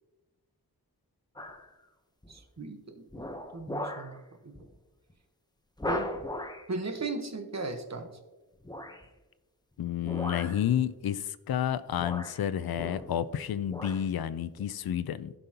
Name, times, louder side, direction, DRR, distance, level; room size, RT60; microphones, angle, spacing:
sound 1, 1.4-1.7 2.2-2.6 3.1-4.2 4.5-4.7 5.1-5.2 5.8-6.7 8.6-9.1 10.0-10.7 11.6-11.7 12.0-13.3 13.6-14.0 14.6-14.7, left 1 dB, 10° left, 0.8 m, -38 dB
voice 1, 2.3-3.2 3.5-4.5 5.8-6.1 6.7-8.1, right 3 dB, 45° right, 6 dB, 1.1 m, -37 dB
voice 2, 9.8-15.3, left 10 dB, 70° left, 14 dB, 0.5 m, -30 dB
15.5 x 5.4 x 2.8 m, 1.1 s
wide cardioid pair, 85°, 38 cm